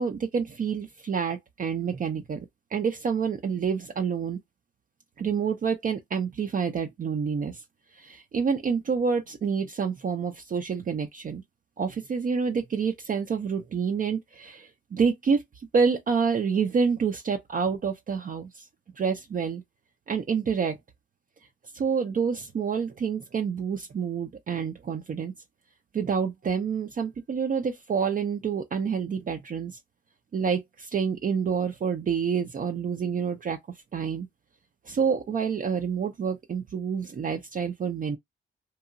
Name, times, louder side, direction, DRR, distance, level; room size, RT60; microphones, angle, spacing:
voice 1, 0.0-2.5 2.7-4.4 5.2-7.6 7.9-11.4 11.8-18.7 19.0-19.6 20.1-20.8 21.7-25.3 25.9-29.8 30.3-33.6 33.9-34.3 34.8-38.2, right 6 dB, 40° right, 0.5 m, -28 dB
2.8 x 2.3 x 2.5 m
cardioid pair, 80°, 21 cm